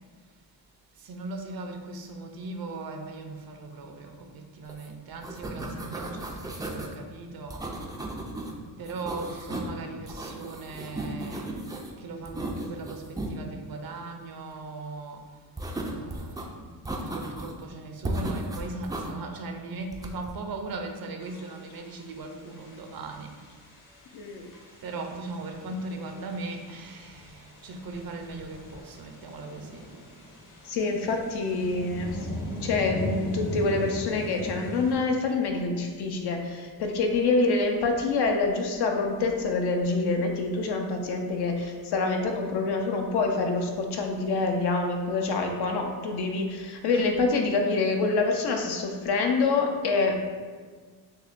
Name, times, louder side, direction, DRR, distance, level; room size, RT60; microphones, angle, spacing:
voice 1, 1.0-7.7 8.8-11.5 12.0-15.2 15.7-16.7 17.0-23.3 24.8-29.9 46.9-47.1, right 3 dB, 55° right, 4 dB, 0.6 m, -38 dB
sound 1, 4.7-4.9 5.1-6.9 7.5-8.5 8.8-9.8 10.1-11.9 12.3-13.3 15.6-16.4 16.9-17.6 18.0-19.1 19.9-20.3, right 1 dB, 10° right, 0.3 m, -35 dB
sound 2, 21.2-34.9, left 1 dB, 45° left, 1.1 m, -40 dB
voice 2, 24.1-24.5 30.6-32.3 32.6-50.2, left 3 dB, 65° left, 3 dB, 0.7 m, -26 dB
6.5 x 2.2 x 2.5 m, 1.5 s
cardioid pair, 90°, 42 cm